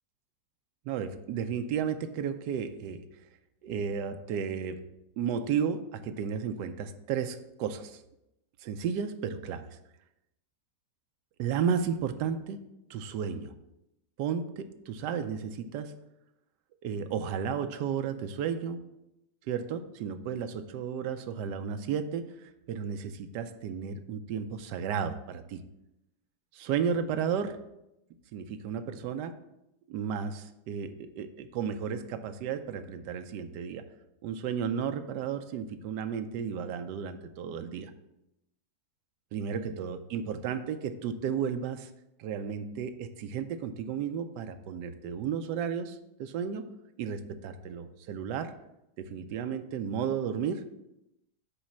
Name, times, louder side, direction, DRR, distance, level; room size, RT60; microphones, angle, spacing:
voice 1, 0.9-3.0 3.6-4.8 5.2-8.0 8.6-9.8 11.4-12.6 12.9-13.5 14.2-15.9 16.8-18.8 19.5-25.6 26.5-27.6 28.3-29.3 29.9-33.9 34.2-37.9 39.3-41.9 42.2-46.7 47.0-48.5 49.0-50.6, right 7 dB, 75° right, 8 dB, 1.2 m, -33 dB
8.3 x 3.2 x 6.0 m, 0.87 s
omnidirectional pair, 1.9 m